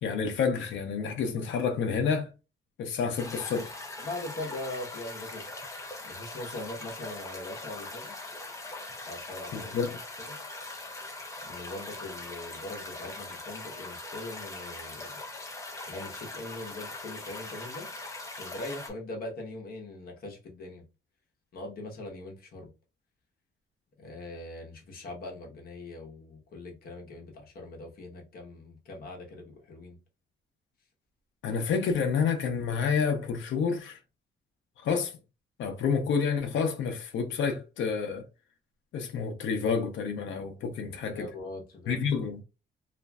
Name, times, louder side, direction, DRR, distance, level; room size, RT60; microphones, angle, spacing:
voice 1, 0.0-2.3 2.8-3.7 9.5-10.0 31.4-34.0 34.8-35.1 35.6-38.2 38.9-41.3 41.9-42.4, left 6 dB, 80° left, 0.6 m, -29 dB
sound 1, 3.2-18.9, left 2 dB, 15° left, 0.5 m, -41 dB
voice 2, 4.0-5.5 6.0-8.1 8.9-9.7 10.3-10.4 11.4-15.2 15.9-17.9 18.4-20.8 21.5-22.7 24.0-30.0 41.1-42.0, left 2 dB, 50° left, 1.0 m, -41 dB
3.0 x 2.5 x 2.3 m
wide cardioid pair, 170°, 19 cm